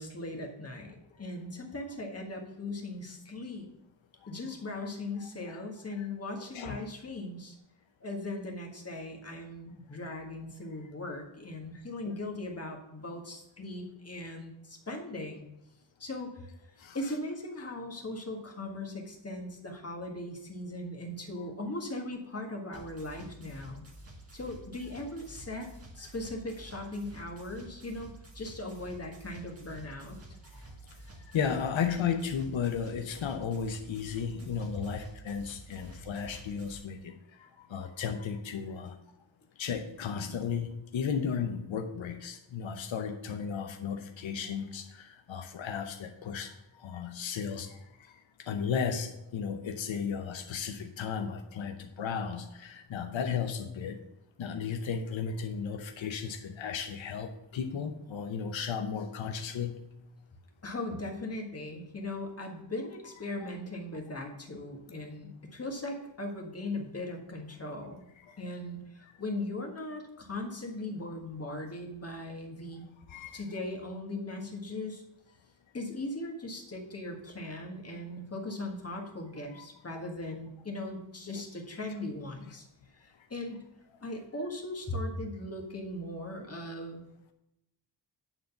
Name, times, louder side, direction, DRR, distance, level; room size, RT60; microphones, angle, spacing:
voice 1, 0.0-3.7 4.3-7.6 8.0-15.5 16.0-16.5 16.9-23.9 24.3-25.7 26.0-30.2 60.6-68.1 68.4-72.8 73.3-75.0 75.7-82.7 83.0-83.6 84.0-87.0, left 2 dB, 35° left, 1 dB, 1.6 m, -39 dB
sound 1, 22.7-36.8, right 2 dB, 30° right, 1.6 m, -50 dB
voice 2, 31.3-39.0 39.6-46.5 46.8-47.8 48.4-54.0 54.4-59.8 63.4-63.5 68.3-68.4 73.1-73.4 79.5-79.6, left 6 dB, 90° left, 6 dB, 0.8 m, -34 dB
9.2 x 3.9 x 6.9 m, 0.90 s
wide cardioid pair, 90°, 45 cm